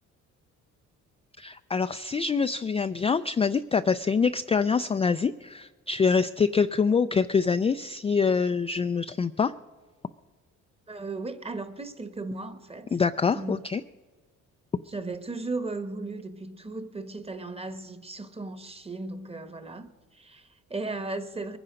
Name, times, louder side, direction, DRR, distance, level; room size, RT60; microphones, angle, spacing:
voice 1, 1.4-9.5 12.9-13.8, left 5 dB, 20° left, 0.3 m, -25 dB
voice 2, 10.9-12.9 13.3-13.6 14.9-21.6, right 3 dB, 20° right, 1.2 m, -36 dB
21.5 x 10.0 x 5.1 m
cardioid pair, 90°, 30 cm